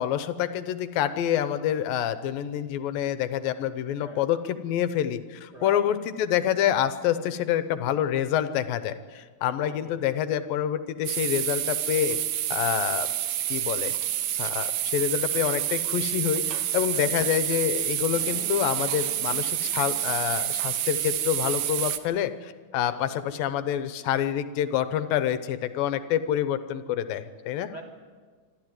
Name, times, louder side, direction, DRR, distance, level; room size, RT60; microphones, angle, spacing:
voice 1, 0.0-12.2 12.5-13.1 13.5-13.9 14.4-27.7, left 10 dB, 80° left, 11 dB, 2.6 m, -27 dB
voice 2, 9.6-10.0 16.9-17.4 22.8-23.3 27.7-27.8, right 1 dB, 50° right, 1 dB, 1.3 m, -44 dB
sound 1, 11.1-22.0, right 12 dB, 75° right, 2.5 m, -28 dB
sound 2, 18.1-22.6 23.0-23.1 23.4-23.5, right 2 dB, 30° right, 1.6 m, -48 dB
26.5 x 12.5 x 9.4 m, 1.5 s
omnidirectional pair, 4.1 m